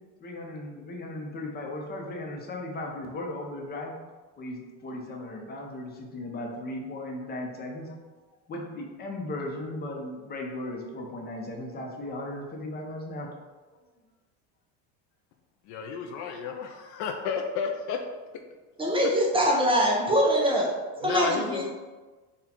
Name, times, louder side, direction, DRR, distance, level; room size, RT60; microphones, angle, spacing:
voice 1, 0.2-4.0 4.4-8.0 8.5-13.3, left 1 dB, 30° left, 0 dB, 0.8 m, -36 dB
voice 2, 15.7-18.0 21.0-21.7, left 6 dB, 55° left, 4 dB, 0.5 m, -32 dB
voice 3, 18.8-20.7 21.0-21.7, equal, 15° right, -2 dB, 0.6 m, -23 dB
4.1 x 2.4 x 4.3 m, 1.3 s
cardioid pair, 135°, 34 cm